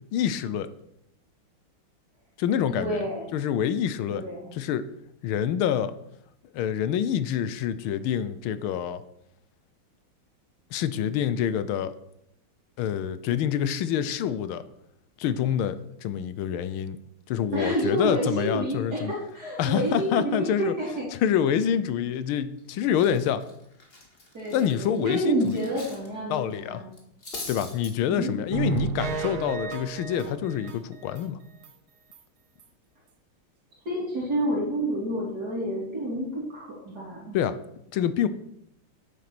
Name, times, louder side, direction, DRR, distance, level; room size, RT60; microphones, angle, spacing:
voice 1, 0.1-0.7 2.4-3.0 3.3-4.2 4.5-4.9 5.2-5.9 6.5-9.0 10.7-12.0 12.8-14.6 15.2-17.0 17.3-19.1 19.6-20.8 21.1-23.4 24.5-25.5 26.3-26.8 27.5-31.4 37.3-37.6 37.9-38.3, left 9 dB, 90° left, 13 dB, 1.6 m, -26 dB
voice 2, 2.7-3.4 4.1-4.5 17.5-21.1 24.3-26.9 28.1-28.3 33.9-37.4, equal, 50° right, -4 dB, 3.4 m, -29 dB
Cutlery silverware, 22.3-22.6 22.9-26.1 26.3-26.5 26.9-27.9, left 2 dB, 30° left, 2.1 m, -42 dB
sound 1, 28.5-31.2 31.6-31.7 32.1-32.2 32.6-32.7, right 5 dB, 80° right, 1.9 m, -32 dB
9.4 x 8.6 x 6.0 m, 0.77 s
omnidirectional pair, 2.2 m